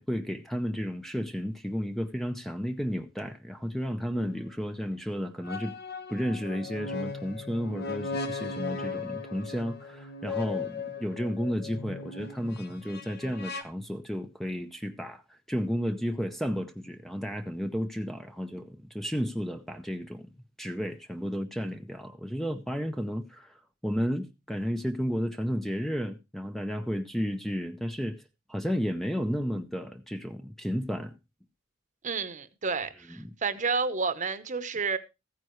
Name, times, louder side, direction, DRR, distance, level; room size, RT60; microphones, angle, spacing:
voice 1, 0.0-5.7 6.1-20.2 20.6-23.6 23.8-28.2 28.5-31.1, equal, ahead, 0.6 m, -32 dB
sound 1, 4.1-4.3 5.4-13.6, left 4 dB, 55° left, 1.3 m, -37 dB
voice 2, 32.0-35.0, right 4 dB, 40° right, 0.9 m, -30 dB
14.5 x 9.4 x 3.1 m
head